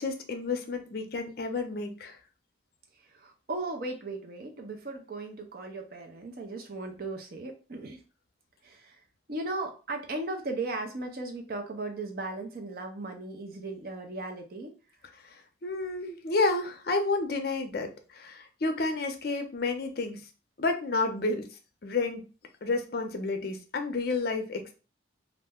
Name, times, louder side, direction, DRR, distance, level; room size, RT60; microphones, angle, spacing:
voice 1, 0.0-2.2 15.3-20.2 20.6-21.5 21.8-22.2 22.6-24.7, left 3 dB, 55° left, 6 dB, 0.5 m, -30 dB
voice 2, 3.0-8.0 8.6-9.0 9.3-14.7, right 2 dB, 50° right, 3 dB, 0.5 m, -37 dB
2.4 x 2.1 x 3.5 m, 0.34 s
head